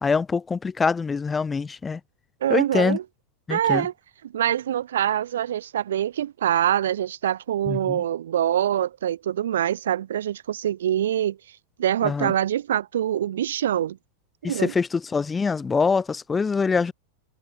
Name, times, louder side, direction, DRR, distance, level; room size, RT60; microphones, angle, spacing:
voice 1, 0.0-2.0 2.5-3.0 3.5-3.9 7.7-8.0 12.0-12.3 14.4-16.9, left 5 dB, 15° left, 1.9 m, -24 dB
voice 2, 2.4-3.0 3.5-3.9 4.3-11.4 11.8-14.0 14.5-14.7, right 11 dB, 60° right, 0.8 m, -24 dB
figure-of-eight pair, 90°, 0 cm